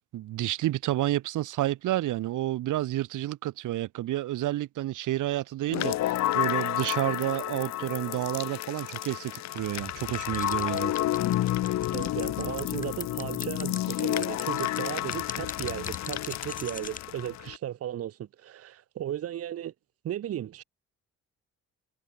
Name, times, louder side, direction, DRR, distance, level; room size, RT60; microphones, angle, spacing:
voice 1, 0.0-10.9, right 15 dB, 85° right, 2.2 m, -30 dB
sound 1, 5.7-17.6, left 14 dB, 65° left, 0.6 m, -30 dB
sound 2, 10.1-17.0, left 4 dB, 25° left, 7.3 m, -40 dB
voice 2, 11.9-19.7 20.0-20.6, right 11 dB, 50° right, 0.7 m, -35 dB
cardioid pair, 90°, 30 cm